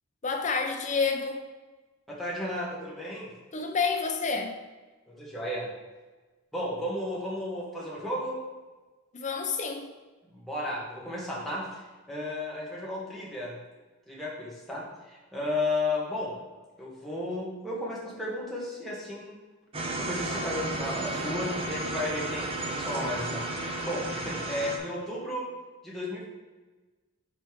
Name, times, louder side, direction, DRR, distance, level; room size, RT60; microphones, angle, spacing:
voice 1, 0.2-1.5 3.5-4.6 9.1-9.9, left 5 dB, 35° left, 4 dB, 0.7 m, -29 dB
voice 2, 2.1-3.3 5.1-5.7 6.5-8.4 10.3-11.8 12.1-13.5 14.1-16.3 16.8-19.4 20.0-25.5 25.8-26.2, left 1 dB, ahead, -6 dB, 1.5 m, -33 dB
sound 1, 19.7-24.8, right 2 dB, 25° right, 0.7 m, -33 dB
5.3 x 4.2 x 4.7 m, 1.3 s
head